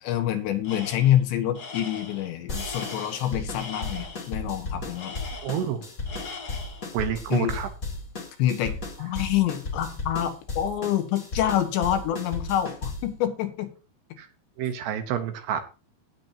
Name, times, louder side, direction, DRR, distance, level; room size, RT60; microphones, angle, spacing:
voice 1, 0.0-5.2 7.3-7.5 8.4-13.7, left 11 dB, 75° left, 7 dB, 3.6 m, -26 dB
Tools, 0.6-1.2 1.5-4.3 4.9-5.8 6.1-6.9, left 4 dB, 60° left, 0.9 m, -40 dB
sound 1, 2.5-13.2, left 3 dB, 30° left, 1.8 m, -35 dB
voice 2, 5.4-5.8 6.9-7.7 14.2-14.3 14.6-15.6, right 9 dB, 75° right, 8 dB, 3.0 m, -28 dB
18.0 x 7.5 x 2.9 m, 0.33 s
omnidirectional pair, 5.3 m